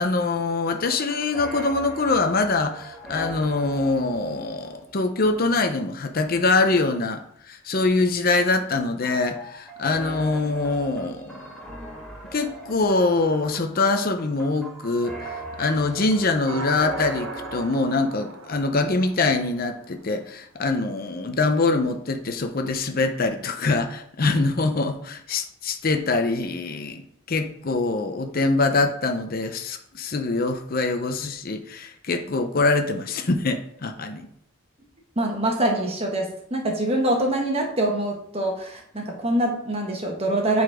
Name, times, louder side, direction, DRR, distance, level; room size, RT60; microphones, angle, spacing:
voice 1, 0.0-11.5 12.3-27.0 27.3-34.3, left 3 dB, 45° left, 7 dB, 0.6 m, -24 dB
sound 1, 0.7-5.6 9.0-17.6, right 1 dB, ahead, 2.4 m, -40 dB
sound 2, 16.5-19.9, right 3 dB, 80° right, 0.9 m, -37 dB
voice 2, 35.2-40.6, right 1 dB, 30° right, 1 dB, 1.3 m, -24 dB
9.4 x 4.1 x 4.8 m, 0.69 s
head